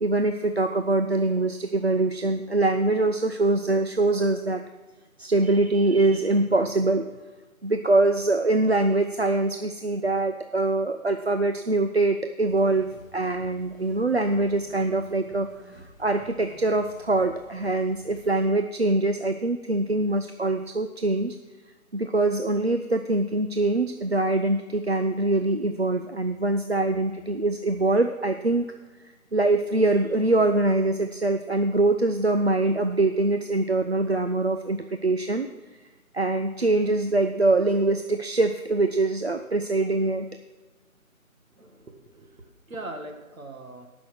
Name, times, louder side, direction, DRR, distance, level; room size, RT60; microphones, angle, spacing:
voice 1, 0.0-4.6 5.2-7.1 7.6-15.5 15.7-21.4 21.9-28.6 29.3-35.5 36.1-40.3, right 2 dB, 50° right, 7 dB, 0.5 m, -23 dB
sound 1, 12.5-18.5, right 1 dB, 5° right, 4.0 m, -51 dB
voice 2, 41.5-43.9, right 2 dB, 70° right, 4 dB, 1.9 m, -41 dB
14.0 x 6.2 x 6.2 m, 1.3 s
figure-of-eight pair, 180°, 43 cm